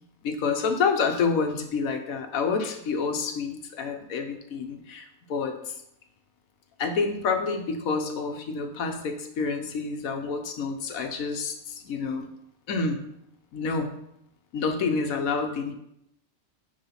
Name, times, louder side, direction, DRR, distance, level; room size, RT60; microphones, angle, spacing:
voice 1, 0.2-5.8 6.8-12.3 12.7-13.0 13.5-14.0 14.5-15.7, left 4 dB, 90° left, 5 dB, 1.3 m, -28 dB
6.7 x 3.6 x 5.8 m, 0.78 s
omnidirectional pair, 1.4 m